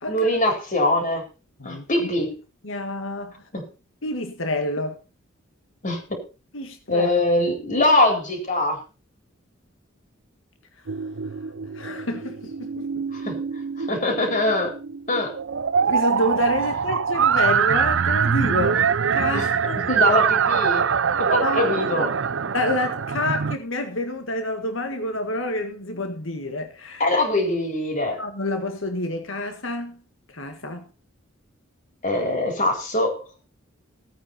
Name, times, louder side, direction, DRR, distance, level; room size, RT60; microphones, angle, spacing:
voice 1, 0.1-1.2 1.6-2.3 3.5-3.7 5.8-6.2 6.9-8.8 13.1-13.4 13.8-14.7 15.1-15.3 19.3-19.5 19.8-22.2 27.0-28.2 32.0-33.2, left 1 dB, 40° left, 4.3 m, -23 dB
voice 2, 2.6-3.3 4.0-5.0 6.5-7.1 11.7-13.1 15.9-19.8 21.4-21.7 22.5-27.0 28.2-30.0 30.3-30.8, left 1 dB, 75° left, 1.7 m, -28 dB
sound 1, 10.9-23.6, right 7 dB, 70° right, 0.6 m, -23 dB
17.0 x 8.9 x 4.2 m
head